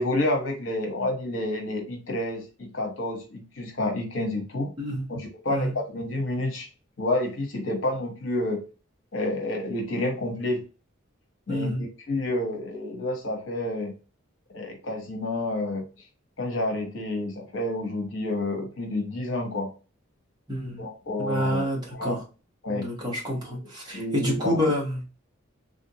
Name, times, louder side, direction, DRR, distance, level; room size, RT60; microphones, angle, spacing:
voice 1, 0.0-4.7 5.1-6.7 7.0-8.6 9.1-10.6 11.5-13.9 14.5-15.8 16.4-19.7 20.8-21.6 21.9-22.2 22.6-22.9 23.4-23.6 23.9-24.6, left 1 dB, 70° left, 3 dB, 1.0 m, -29 dB
voice 2, 11.5-11.8 20.5-20.8 21.2-22.2 22.7-25.0, equal, 20° right, -3 dB, 1.2 m, -28 dB
3.4 x 2.5 x 2.8 m, 0.33 s
head